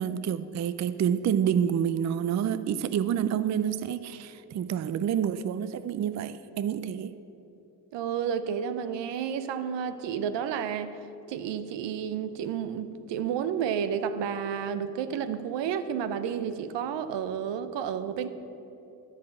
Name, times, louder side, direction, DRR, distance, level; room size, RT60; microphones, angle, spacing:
voice 1, 0.0-7.1, right 8 dB, 40° right, 0.4 m, -28 dB
voice 2, 7.9-10.9 11.3-18.3, right 8 dB, 75° right, 0.7 m, -31 dB
13.0 x 5.0 x 7.2 m
supercardioid pair, 60°, 43 cm